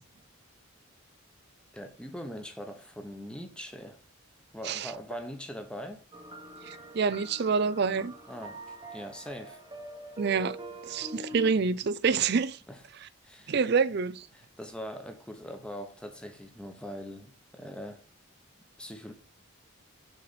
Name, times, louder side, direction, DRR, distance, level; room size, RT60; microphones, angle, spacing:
voice 1, 1.7-4.0 4.5-6.0 8.3-8.6 8.9-9.6 12.7-12.8 13.2-13.6 14.3-18.0 18.8-19.1, equal, 5° left, 1.0 m, -41 dB
sound 1, 6.1-11.5, right 1 dB, 20° right, 1.0 m, -44 dB
voice 2, 6.6-8.1 10.2-10.6 10.9-12.6 13.5-14.3, right 5 dB, 50° right, 0.4 m, -27 dB
6.5 x 4.2 x 4.2 m
head